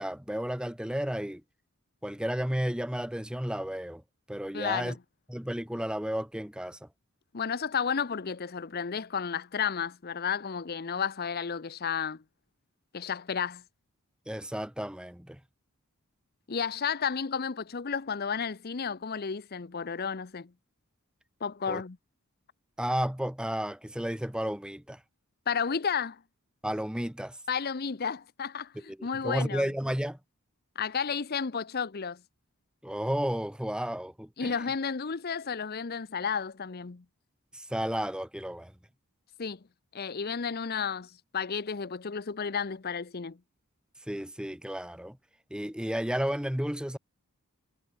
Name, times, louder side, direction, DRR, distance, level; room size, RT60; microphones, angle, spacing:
voice 1, 0.0-1.4 2.0-4.0 4.3-5.0 5.3-6.9 14.3-15.4 21.7-21.8 22.8-25.0 26.6-27.4 28.9-30.2 32.8-34.5 37.5-38.7 44.1-45.2 45.5-47.0, equal, 5° right, 0.9 m, -32 dB
voice 2, 4.5-5.0 7.3-12.2 12.9-13.6 16.5-20.5 21.4-22.0 25.5-26.2 27.5-29.6 30.8-32.2 34.4-37.0 39.4-39.6 39.9-43.4, left 6 dB, 45° left, 0.7 m, -32 dB
head